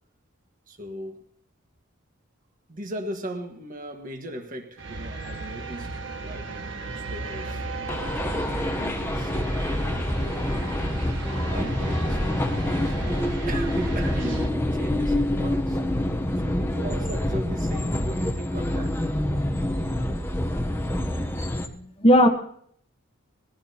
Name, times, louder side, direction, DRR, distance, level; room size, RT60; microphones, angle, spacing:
voice 1, 0.7-1.2 2.7-7.7 8.1-10.9 11.5-15.8 16.4-18.9, right 1 dB, 40° right, 4 dB, 1.6 m, -38 dB
sound 1, 4.8-14.5, right 2 dB, 60° right, 1.6 m, -35 dB
sound 2, 7.9-21.7, left 1 dB, 10° left, 0.8 m, -26 dB
voice 2, 21.5-22.3, equal, 25° left, 5 dB, 1.2 m, -19 dB
20.5 x 15.0 x 2.9 m, 0.63 s
head